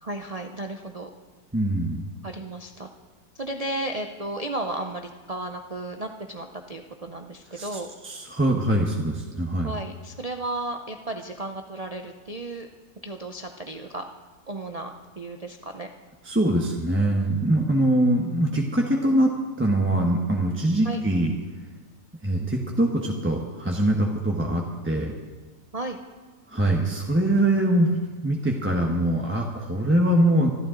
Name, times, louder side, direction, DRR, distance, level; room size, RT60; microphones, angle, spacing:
voice 1, 0.0-1.1 2.2-2.9 3.3-7.9 9.6-12.7 13.0-14.0 14.5-15.9 20.8-21.0 25.7-26.0, right 2 dB, 55° right, 4 dB, 0.4 m, -34 dB
voice 2, 1.5-2.0 7.6-7.7 8.0-9.7 16.2-19.3 19.6-21.3 22.2-25.1 26.5-30.5, right 1 dB, 10° right, -1 dB, 1.0 m, -23 dB
25.0 x 12.0 x 3.8 m, 1.3 s
omnidirectional pair, 1.7 m